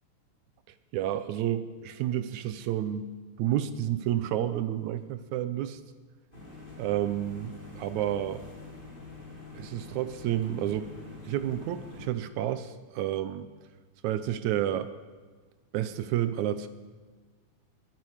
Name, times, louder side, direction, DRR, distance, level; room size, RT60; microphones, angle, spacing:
voice 1, 0.7-5.8 6.8-8.4 9.5-11.0 11.2-13.5 14.0-14.9 15.7-16.7, right 11 dB, 75° right, 12 dB, 1.9 m, -30 dB
sound 1, 6.3-12.1, left 3 dB, 15° left, 3.2 m, -46 dB
21.5 x 8.8 x 6.4 m, 1.4 s
omnidirectional pair, 3.6 m